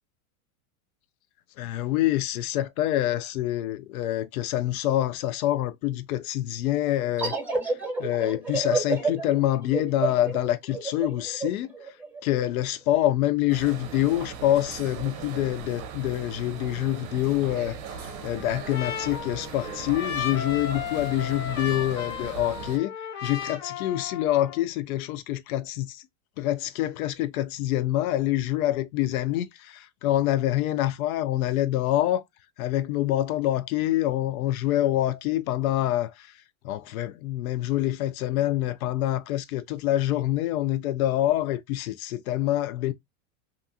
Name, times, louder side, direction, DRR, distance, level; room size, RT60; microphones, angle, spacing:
voice 1, 1.6-7.3 7.7-7.8 8.0-11.7 12.2-22.9 23.2-26.0 26.4-32.2 32.6-36.3 36.6-42.9, left 14 dB, 85° left, 0.5 m, -26 dB
sound 1, 7.2-12.5, right 3 dB, 5° right, 1.0 m, -30 dB
sound 2, 13.5-22.8, right 6 dB, 55° right, 0.6 m, -39 dB
Trumpet, 17.9-24.6, left 8 dB, 40° left, 0.7 m, -35 dB
2.6 x 2.3 x 2.6 m
supercardioid pair, 125°, 42 cm